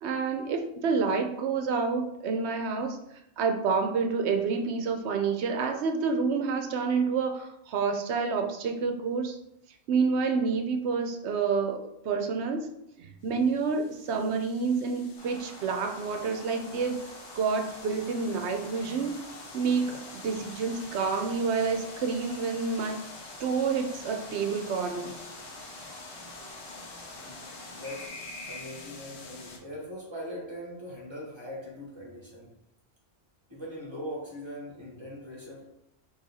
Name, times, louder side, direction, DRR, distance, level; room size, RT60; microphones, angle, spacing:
voice 1, 0.0-3.0 3.4-9.4 9.9-12.7 13.0-17.0 17.3-19.2 19.5-23.0 23.4-25.1, right 5 dB, 75° right, 5 dB, 0.9 m, -28 dB
sound 1, 13.3-29.6, left 3 dB, 70° left, 1.0 m, -46 dB
sound 2, 15.2-28.1, equal, 5° left, 1.6 m, -48 dB
voice 2, 27.1-32.6 33.5-35.7, equal, 25° right, -4 dB, 1.4 m, -41 dB
4.0 x 2.9 x 4.0 m, 0.80 s
omnidirectional pair, 1.2 m